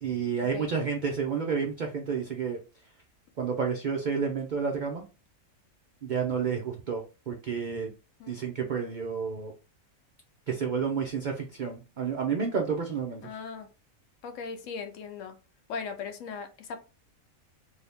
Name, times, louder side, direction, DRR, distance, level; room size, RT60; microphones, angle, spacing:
voice 1, 0.0-2.6 3.4-5.0 6.0-7.9 8.3-9.5 10.5-13.2, right 6 dB, 75° right, 2 dB, 0.4 m, -30 dB
voice 2, 13.2-13.7 14.2-15.3 15.7-16.8, left 5 dB, 70° left, 6 dB, 0.9 m, -38 dB
2.7 x 2.7 x 3.4 m, 0.32 s
omnidirectional pair, 1.5 m